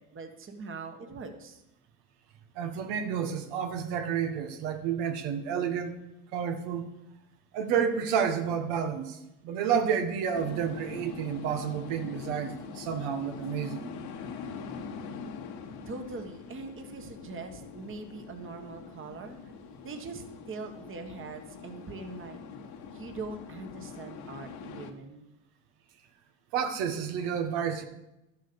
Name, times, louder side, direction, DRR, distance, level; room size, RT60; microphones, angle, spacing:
voice 1, 0.0-1.6 15.9-19.4 19.8-22.4 22.9-25.3, right 3 dB, 30° right, 5 dB, 1.5 m, -42 dB
voice 2, 2.5-5.9 6.3-6.8 7.5-13.9 26.5-27.8, right 7 dB, 80° right, 6 dB, 1.6 m, -30 dB
sound 1, 10.3-24.9, left 5 dB, 65° left, 1.5 m, -43 dB
11.5 x 7.6 x 6.9 m, 0.92 s
cardioid pair, 125°, 41 cm